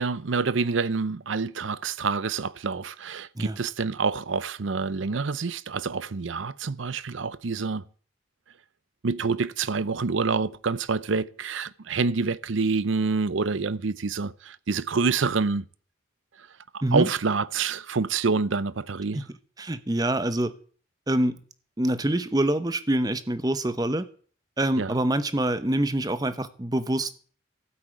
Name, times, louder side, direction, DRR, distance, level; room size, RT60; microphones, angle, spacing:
voice 1, 0.0-7.8 9.0-15.6 16.9-19.2 24.8-25.0, right 4 dB, 80° right, 0.6 m, -27 dB
voice 2, 19.6-20.5 21.1-21.4 21.8-24.0 24.6-27.2, right 1 dB, 20° right, 0.8 m, -25 dB
13.0 x 8.2 x 8.9 m
head